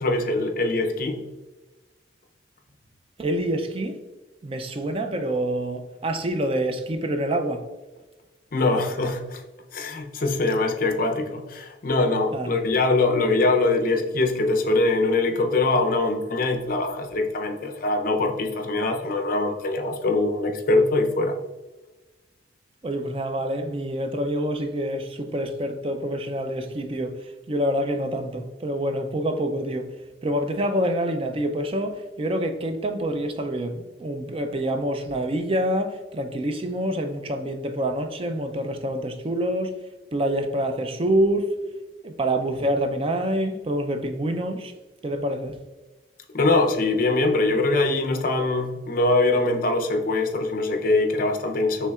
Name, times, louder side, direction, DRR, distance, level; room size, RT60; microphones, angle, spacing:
voice 1, 0.0-1.2 8.5-9.4 9.7-21.4 46.3-51.9, left 2 dB, 50° left, 0.6 m, -23 dB
voice 2, 3.2-4.0 4.4-7.6 12.3-12.5 22.8-29.9 30.2-39.7 40.1-41.5 42.0-44.7 45.0-45.6, right 1 dB, 30° right, 0.4 m, -26 dB
5.6 x 3.3 x 2.3 m
head